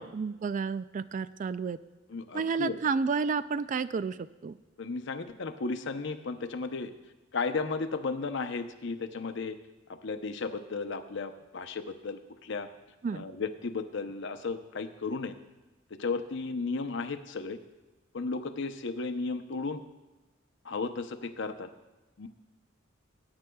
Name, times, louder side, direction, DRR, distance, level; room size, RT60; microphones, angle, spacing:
voice 1, 0.0-1.8 2.3-4.6 13.0-13.3, right 5 dB, 40° right, 15 dB, 0.3 m, -31 dB
voice 2, 2.1-2.8 4.8-6.9 7.3-9.6 10.0-12.7 13.1-15.3 16.0-17.6 18.1-19.8 20.6-21.7 22.2-22.3, left 4 dB, 65° left, 8 dB, 0.7 m, -34 dB
20.0 x 9.8 x 2.3 m, 1.1 s
head